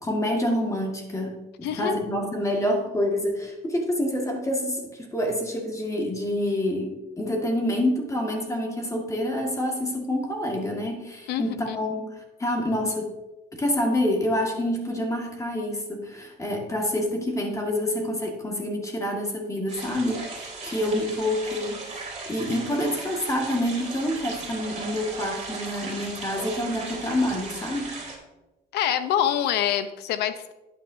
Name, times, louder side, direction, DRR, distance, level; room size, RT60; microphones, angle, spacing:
voice 1, 0.0-12.1 12.4-13.1 13.6-28.0, left 1 dB, 20° left, 1 dB, 1.8 m, -27 dB
voice 2, 1.6-2.0 11.3-11.8 28.7-30.5, left 10 dB, 80° left, 11 dB, 0.8 m, -26 dB
sound 1, 19.7-28.2, right 3 dB, 40° right, 3.0 m, -37 dB
11.0 x 9.1 x 2.7 m, 1.0 s
cardioid pair, 110°, 17 cm